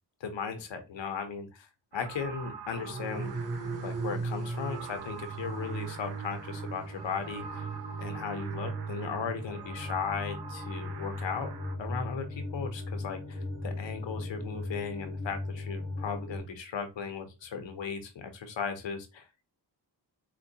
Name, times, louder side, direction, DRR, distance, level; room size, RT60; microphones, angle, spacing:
voice 1, 0.2-3.3 3.8-7.7 8.0-11.5 11.8-19.5, left 6 dB, 90° left, 7 dB, 0.7 m, -37 dB
sound 1, 1.9-11.8, right 5 dB, 65° right, 0.6 m, -46 dB
sound 2, 2.7-16.4, right 1 dB, 35° right, 2.0 m, -37 dB
4.3 x 2.2 x 2.7 m, 0.27 s
cardioid pair, 60°, 43 cm